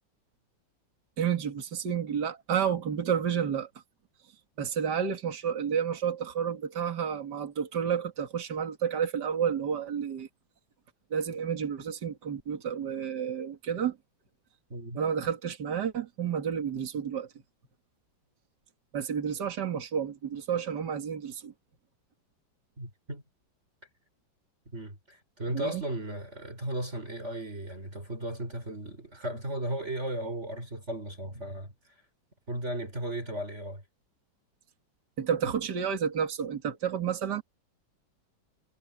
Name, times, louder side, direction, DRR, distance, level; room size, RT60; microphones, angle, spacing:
voice 1, 1.2-3.7 4.6-10.3 11.1-14.0 14.9-17.3 18.9-21.5 25.5-25.8 35.2-37.4, right 7 dB, 60° right, 2.7 m, -30 dB
voice 2, 14.7-15.0 22.8-23.2 24.7-31.7 32.5-33.8, right 1 dB, 35° right, 5.3 m, -35 dB
omnidirectional pair, 2.1 m